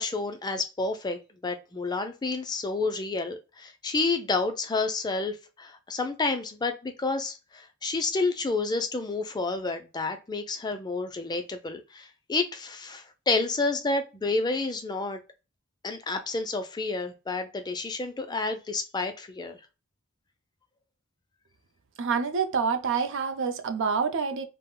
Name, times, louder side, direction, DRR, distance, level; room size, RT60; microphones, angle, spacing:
voice 1, 0.0-15.2 15.8-19.6, left 3 dB, 20° left, 0.3 m, -30 dB
voice 2, 22.0-24.4, right 5 dB, 60° right, 0.4 m, -27 dB
2.3 x 2.0 x 3.6 m
head